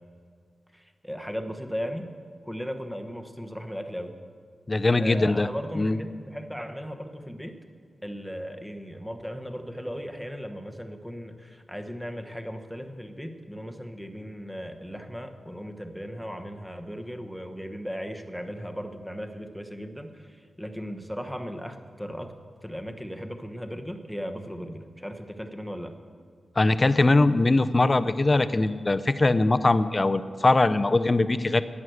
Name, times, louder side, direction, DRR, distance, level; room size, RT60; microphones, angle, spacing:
voice 1, 0.7-2.1 2.5-4.1 5.0-7.5 8.0-22.3 22.6-25.9, equal, ahead, 5 dB, 1.1 m, -37 dB
voice 2, 4.7-5.5 5.7-6.0 26.6-31.6, left 2 dB, 30° left, 13 dB, 0.5 m, -21 dB
11.0 x 9.8 x 7.8 m, 2.1 s
wide cardioid pair, 105°, 0 cm